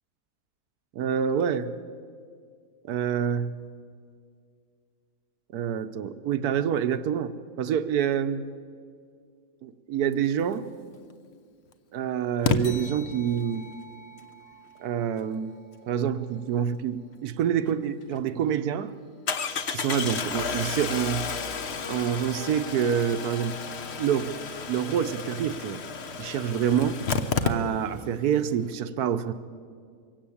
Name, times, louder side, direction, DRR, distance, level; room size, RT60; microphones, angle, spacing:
voice 1, 0.9-1.7 2.8-3.6 5.5-8.5 9.6-10.7 11.9-13.6 14.8-15.5 15.9-18.9 19.7-21.3 21.9-23.6 24.0-24.4 24.7-25.8 26.2-26.9 27.4-29.3, right 8 dB, 70° right, 12 dB, 1.2 m, -27 dB
Engine starting, 10.9-11.0 12.4-12.6 17.7-17.8 18.1-18.2 19.3-28.1 28.4-28.5 28.7-28.8, left 5 dB, 45° left, 1.1 m, -31 dB
sound 1, 12.6-17.6, left 1 dB, 60° left, 1.7 m, -49 dB
23.5 x 16.5 x 8.6 m, 2.2 s
omnidirectional pair, 1.8 m